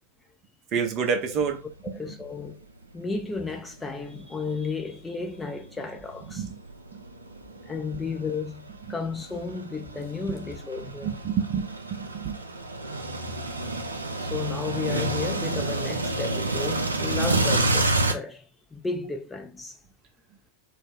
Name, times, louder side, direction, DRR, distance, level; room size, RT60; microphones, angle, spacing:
voice 1, 0.7-1.6 6.3-6.6 11.0-12.4, right 6 dB, 35° right, 0.6 m, -28 dB
sound 1, 1.3-1.6 2.0-2.1 3.1-4.8 5.4-18.1, right 2 dB, 80° right, 0.4 m, -29 dB
voice 2, 1.8-2.6 2.9-6.5 7.7-8.6 8.9-11.2 14.2-19.8, left 4 dB, 10° left, 0.4 m, -33 dB
2.3 x 2.0 x 3.4 m
figure-of-eight pair, 90°, 0 cm